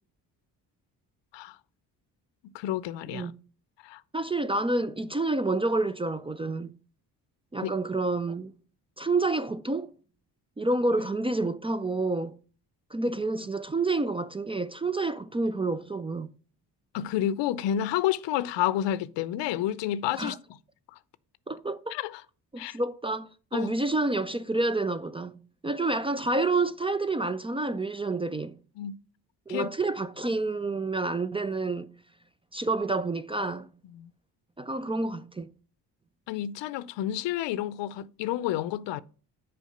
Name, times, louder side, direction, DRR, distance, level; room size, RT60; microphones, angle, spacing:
voice 1, 2.5-3.3 3.8-4.0 7.6-7.7 16.9-20.4 21.9-22.2 22.6-22.8 23.5-23.7 28.8-29.0 29.5-29.7 33.9-34.1 36.3-39.0, left 12 dB, 75° left, 0.6 m, -30 dB
voice 2, 4.1-6.7 7.5-8.5 9.0-9.9 10.6-12.4 12.9-16.3 20.2-20.4 21.5-22.0 22.5-28.6 29.5-31.9 32.5-33.7 34.6-35.5, right 2 dB, 15° right, 0.3 m, -29 dB
6.4 x 4.6 x 6.5 m
supercardioid pair, 70°, 43 cm